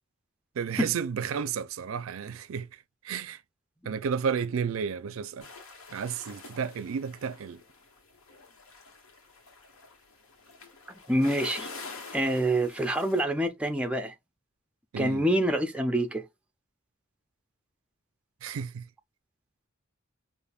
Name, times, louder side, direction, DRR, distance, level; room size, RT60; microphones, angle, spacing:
voice 1, 0.6-2.7 3.0-3.4 3.9-5.5 5.9-7.6 14.9-15.3 18.4-18.8, right 6 dB, 70° right, 0.4 m, -32 dB
sound 1, 5.4-13.2, left 3 dB, 90° left, 1.3 m, -46 dB
voice 2, 11.1-11.7 12.1-14.1 15.0-16.2, right 1 dB, 5° right, 0.4 m, -26 dB
5.1 x 2.5 x 2.3 m
head